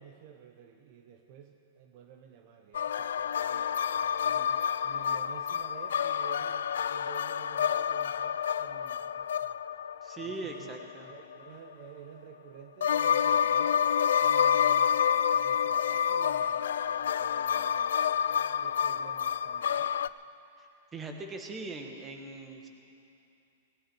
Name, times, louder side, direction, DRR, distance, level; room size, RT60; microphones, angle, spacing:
voice 1, 0.0-9.6 10.2-13.8 14.2-20.0, right 8 dB, 45° right, 5 dB, 0.9 m, -51 dB
sound 1, 2.7-11.4 12.8-20.1, left 8 dB, 85° left, 0.3 m, -28 dB
voice 2, 10.0-11.1 20.6-20.7 20.9-22.7, right 3 dB, 15° right, 3 dB, 1.5 m, -40 dB
18.0 x 17.5 x 4.6 m, 2.7 s
hypercardioid pair, 150°, 0 cm